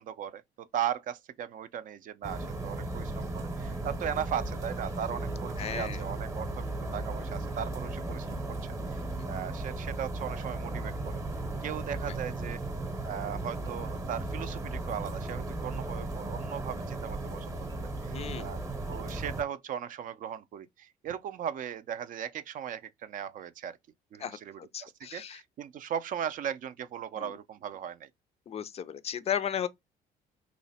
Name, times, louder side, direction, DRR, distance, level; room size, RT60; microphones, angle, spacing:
voice 1, 0.0-8.4 8.9-11.1 11.6-12.6 13.0-18.6 18.9-23.8 24.1-28.1, right 9 dB, 50° right, 0.4 m, -38 dB
sound 1, 2.2-19.4, right 2 dB, 20° right, 0.8 m, -36 dB
voice 2, 5.6-6.0 18.1-18.5 24.2-25.4 27.2-27.3 28.5-29.7, left 8 dB, 40° left, 0.4 m, -35 dB
3.1 x 2.1 x 4.0 m
cardioid pair, 110°, 17 cm